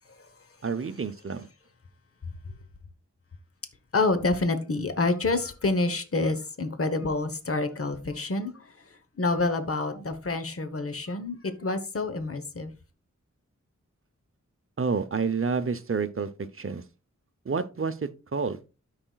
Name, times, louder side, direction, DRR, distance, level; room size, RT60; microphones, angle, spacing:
voice 1, 0.6-1.5 14.8-16.3 16.6-16.8 17.5-18.7, right 5 dB, 45° right, 0.7 m, -29 dB
voice 2, 3.9-12.7, left 3 dB, 50° left, 1.0 m, -28 dB
13.0 x 4.9 x 2.3 m
wide cardioid pair, 60°, 30 cm